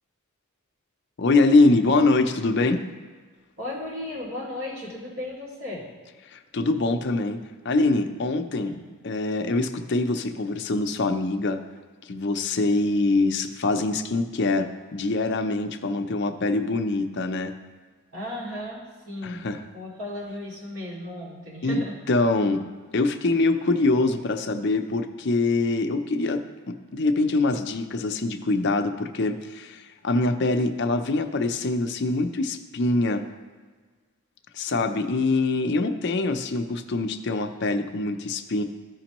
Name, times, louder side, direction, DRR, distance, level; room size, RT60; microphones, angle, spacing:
voice 1, 1.2-2.8 6.3-7.4 7.6-8.7 9.0-11.6 12.1-17.5 19.2-19.6 21.6-22.6 22.9-33.2 34.5-38.6, left 2 dB, 50° left, 6 dB, 0.5 m, -24 dB
voice 2, 3.6-5.9 8.5-8.8 18.1-19.5 19.7-22.0, left 1 dB, 65° right, -5 dB, 2.4 m, -35 dB
14.0 x 5.2 x 3.0 m, 1.4 s
head